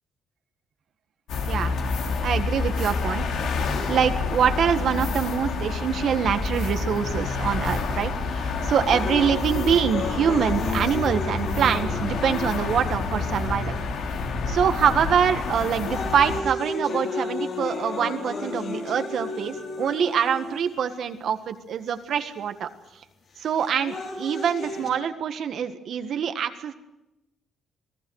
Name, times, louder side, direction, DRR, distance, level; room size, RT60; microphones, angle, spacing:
sound 1, 1.3-16.4, left 4 dB, 80° left, 2.8 m, -28 dB
voice 1, 2.2-3.2 3.9-13.7 14.5-22.7 23.4-26.7, right 8 dB, 65° right, 8 dB, 1.7 m, -25 dB
sound 2, 8.9-12.9 13.6-13.7 14.6-14.9 15.4-20.9 21.9-22.0 23.4-24.9, left 3 dB, 65° left, 6.2 m, -33 dB
26.5 x 18.0 x 6.5 m, 0.93 s
cardioid pair, 90°, 0 cm